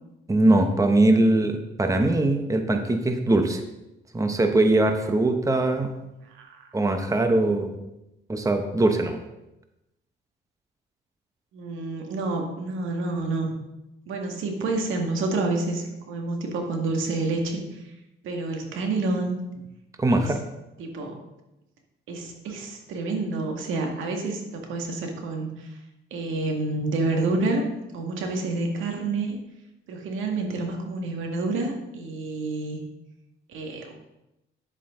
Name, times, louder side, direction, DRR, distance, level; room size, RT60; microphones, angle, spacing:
voice 1, 0.3-3.6 4.1-5.9 6.7-7.7 8.3-9.2 20.0-20.4, right 2 dB, 15° right, 6 dB, 1.0 m, -21 dB
voice 2, 6.2-6.6 11.5-13.6 14.1-17.8 18.2-19.4 20.1-20.4 20.8-21.2 22.1-25.8 26.1-27.6 27.9-29.4 29.9-32.8 33.5-33.9, right 3 dB, 85° right, 2 dB, 2.0 m, -28 dB
10.0 x 8.4 x 3.8 m, 0.92 s
cardioid pair, 90°, 20 cm